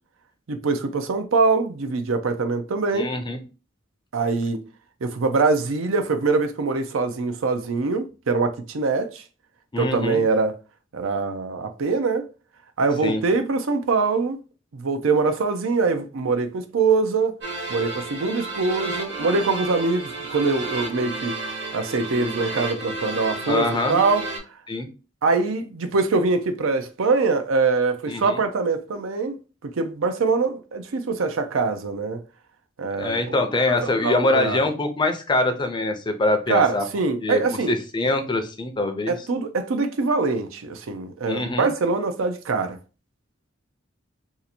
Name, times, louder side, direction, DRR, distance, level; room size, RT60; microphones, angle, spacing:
voice 1, 0.5-3.1 4.1-4.6 5.0-9.2 9.8-10.6 10.9-12.3 12.8-14.4 14.7-17.4 17.7-21.4 21.7-24.2 25.2-29.4 29.6-32.2 32.8-33.4 33.7-34.6 36.5-37.7 39.1-42.8, right 4 dB, 85° right, 0.5 m, -23 dB
voice 2, 2.9-3.4 9.7-10.2 13.0-13.2 23.5-24.0 24.7-24.9 28.1-28.4 33.0-36.8 37.2-37.4 37.7-39.1 41.3-41.7, left 2 dB, 25° left, 0.5 m, -24 dB
sound 1, 17.4-24.4, right 2 dB, 60° right, 1.2 m, -32 dB
2.7 x 2.5 x 4.2 m
head